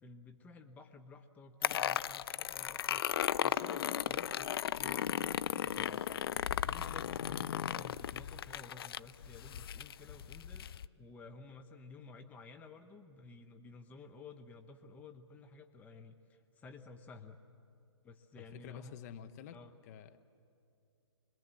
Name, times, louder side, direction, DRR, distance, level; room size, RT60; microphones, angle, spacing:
voice 1, 0.0-3.1 3.4-6.1 6.6-17.4 18.0-19.0 19.5-19.7, left 3 dB, 10° left, 6 dB, 0.8 m, -53 dB
sound 1, 1.6-10.9, left 10 dB, 55° left, 0.5 m, -36 dB
voice 2, 18.5-20.2, left 9 dB, 35° left, 10 dB, 0.9 m, -50 dB
26.0 x 21.0 x 7.6 m, 2.5 s
hypercardioid pair, 135°, 15 cm